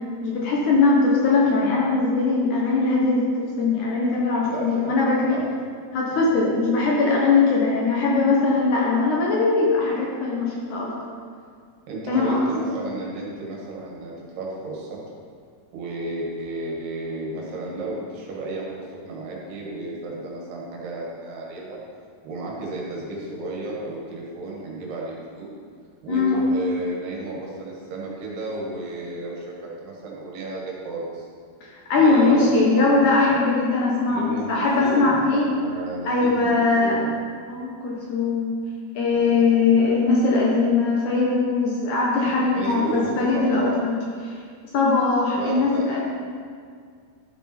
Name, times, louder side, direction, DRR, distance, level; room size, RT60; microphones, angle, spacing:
voice 1, 0.2-5.4 5.9-10.9 12.1-12.4 26.1-26.4 31.6-35.5 36.1-37.0 37.5-38.6 39.0-43.9 44.2-44.3 44.7-46.0, left 3 dB, 65° left, -3 dB, 2.2 m, -20 dB
voice 2, 4.4-5.0 5.3-5.5 6.2-6.4 11.9-15.0 15.7-21.8 22.2-25.5 26.0-31.3 32.0-33.4 34.1-37.2 39.1-39.4 42.5-43.8 45.3-45.9, right 2 dB, 80° right, -3 dB, 3.8 m, -32 dB
12.5 x 7.1 x 4.3 m, 2.1 s
omnidirectional pair, 4.6 m